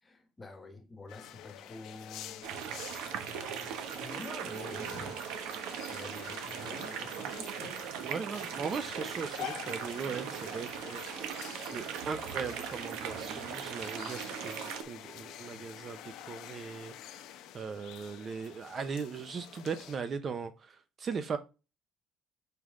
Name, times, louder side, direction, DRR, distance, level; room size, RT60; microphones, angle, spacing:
voice 1, 0.0-2.5 3.8-5.6 5.9-7.9 13.3-13.5, left 2 dB, 10° left, 1.2 m, -48 dB
sound 1, 1.1-20.0, left 12 dB, 60° left, 0.8 m, -48 dB
sound 2, 2.4-14.8, right 8 dB, 75° right, 1.2 m, -39 dB
voice 2, 8.1-11.0 11.7-17.3 17.5-21.4, right 5 dB, 25° right, 0.6 m, -39 dB
6.2 x 5.4 x 3.7 m
cardioid pair, 180°, 0 cm